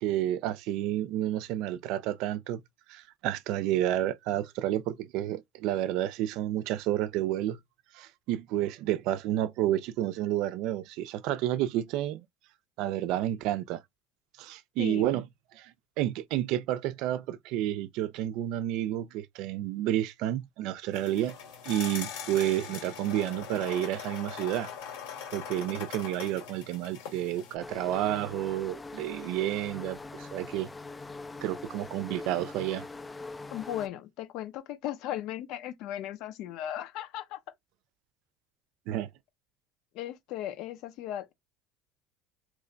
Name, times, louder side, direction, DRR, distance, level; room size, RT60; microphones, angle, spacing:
voice 1, 0.0-2.6 2.9-7.6 7.9-12.2 12.8-13.8 14.4-15.3 15.5-15.7 16.0-21.4 21.6-24.7 25.3-30.7 31.4-32.9 38.9-39.1, right 13 dB, 65° right, 0.4 m, -30 dB
voice 2, 14.8-15.2 33.5-37.4 39.9-41.3, left 12 dB, 65° left, 0.6 m, -37 dB
sound 1, 20.9-27.5, left 8 dB, 85° left, 1.9 m, -41 dB
sound 2, 27.6-33.9, left 3 dB, 15° left, 0.3 m, -42 dB
3.0 x 2.2 x 3.8 m
cardioid pair, 130°, 0 cm